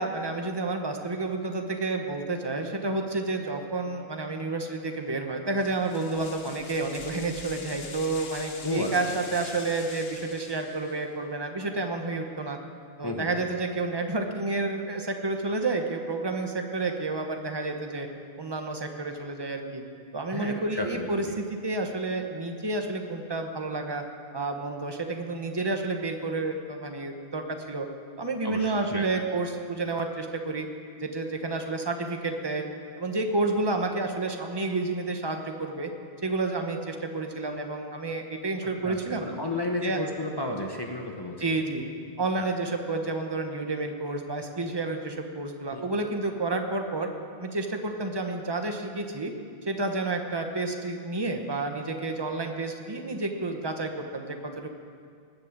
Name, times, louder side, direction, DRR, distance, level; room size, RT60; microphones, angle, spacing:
voice 1, 0.0-12.6 13.0-18.1 18.4-19.8 20.1-24.0 24.3-27.9 28.2-30.7 31.0-32.6 33.0-35.9 36.2-39.2 39.8-40.0 41.4-41.8 42.2-47.1 47.4-49.3 49.6-54.7, right 3 dB, 25° right, 4 dB, 1.2 m, -30 dB
sound 1, 5.5-11.1, left 4 dB, 65° left, 1.3 m, -44 dB
voice 2, 8.6-9.0 13.0-13.3 20.3-21.1 28.4-29.1 38.8-41.4 42.4-42.5 45.7-45.9, left 1 dB, 25° left, 1 dB, 1.1 m, -32 dB
19.5 x 8.1 x 7.4 m, 2.3 s
omnidirectional pair, 1.1 m